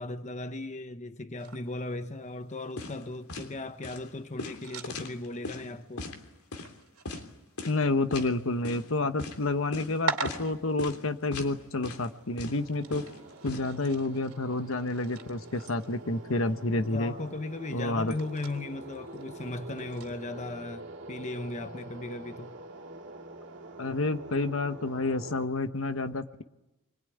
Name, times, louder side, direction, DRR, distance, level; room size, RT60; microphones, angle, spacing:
voice 1, 0.0-6.1 16.8-22.6, left 2 dB, 30° left, 0.9 m, -37 dB
sound 1, 1.4-20.2, right 4 dB, 75° right, 2.8 m, -44 dB
sound 2, 2.8-3.0 3.3-3.5 3.8-4.0 4.4-5.6 6.0-6.2 6.5-6.7 7.1-7.2 7.6-7.8 8.1-8.3 8.6-8.9 9.2-9.4 9.7-9.9 10.3-10.5 10.8-11.0 11.3-11.5 11.8-12.1 12.4-13.6, left 2 dB, 85° left, 3.4 m, -38 dB
voice 2, 7.6-13.0 13.4-17.1 17.7-18.1 23.8-26.4, left 2 dB, 65° left, 1.2 m, -29 dB
sound 3, 12.0-25.5, right 2 dB, 55° right, 2.8 m, -46 dB
25.0 x 21.5 x 9.3 m
head